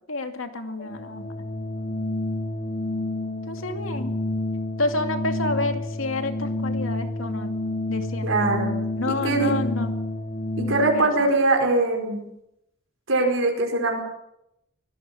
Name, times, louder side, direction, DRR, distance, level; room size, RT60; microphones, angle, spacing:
voice 1, 0.1-1.3 3.5-4.1 4.8-7.5 7.9-8.3 9.0-10.0 10.9-11.3, left 2 dB, 90° left, 6 dB, 2.5 m, -29 dB
Organ, 0.8-11.1, left 2 dB, 35° left, 2.6 m, -29 dB
voice 2, 8.2-8.7 9.1-9.5 10.6-12.2 13.1-14.0, right 2 dB, 85° right, 2 dB, 5.1 m, -22 dB
23.5 x 17.5 x 7.2 m, 0.84 s
head